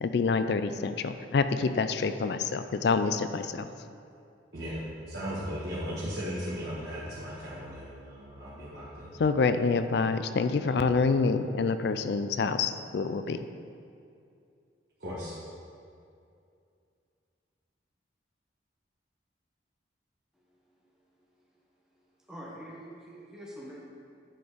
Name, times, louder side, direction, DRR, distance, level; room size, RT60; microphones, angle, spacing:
voice 1, 0.0-3.7 9.2-13.5, left 4 dB, 60° left, 10 dB, 0.4 m, -27 dB
voice 2, 4.5-9.2 15.0-15.3, equal, 55° right, -9 dB, 1.5 m, -37 dB
voice 3, 22.0-23.8, equal, 5° right, -6 dB, 1.4 m, -46 dB
9.7 x 4.4 x 5.0 m, 2.4 s
head